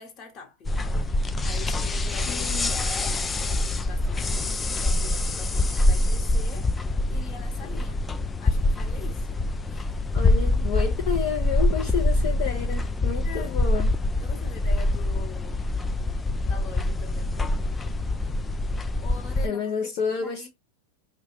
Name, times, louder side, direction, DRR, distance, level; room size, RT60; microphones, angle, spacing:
voice 1, 0.0-3.4 3.8-6.7 7.1-8.1 8.4-9.8 13.2-13.6 14.2-15.6 16.4-17.4 19.0-20.5, left 6 dB, 35° left, 1.1 m, -44 dB
sound 1, 0.6-19.5, left 2 dB, 15° left, 0.3 m, -25 dB
voice 2, 2.3-2.7 10.1-13.9 19.4-20.5, left 7 dB, 50° left, 0.7 m, -30 dB
4.7 x 2.3 x 3.0 m
figure-of-eight pair, 90°, 0 cm